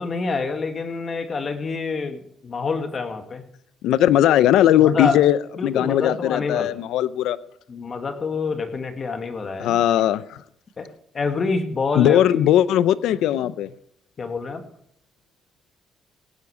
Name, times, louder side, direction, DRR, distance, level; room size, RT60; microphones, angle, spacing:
voice 1, 0.0-3.4 4.8-5.2 5.6-6.8 7.7-9.8 10.8-10.9 11.1-12.5 14.2-14.6, left 4 dB, 45° left, 6 dB, 1.9 m, -27 dB
voice 2, 3.8-7.4 9.6-10.4 12.0-13.7, left 12 dB, 90° left, 16 dB, 0.6 m, -18 dB
16.5 x 9.6 x 4.9 m, 0.69 s
cardioid pair, 90°, 0 cm